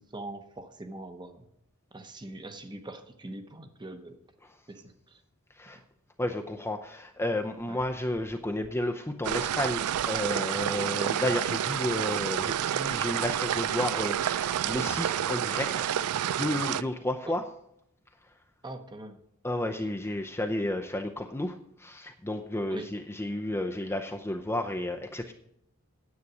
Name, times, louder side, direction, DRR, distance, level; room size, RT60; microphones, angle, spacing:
voice 1, 0.0-1.5 1.9-4.2 4.7-5.2 5.7-5.8 7.7-7.8 17.2-17.4 18.6-19.2 22.7-22.9, right 1 dB, 20° right, 7 dB, 0.9 m, -42 dB
voice 2, 6.2-15.9 16.2-17.4 19.4-25.3, left 1 dB, 10° left, 4 dB, 0.5 m, -32 dB
sound 1, 9.2-16.8, right 10 dB, 85° right, 0.4 m, -29 dB
9.6 x 8.3 x 6.1 m, 0.76 s
head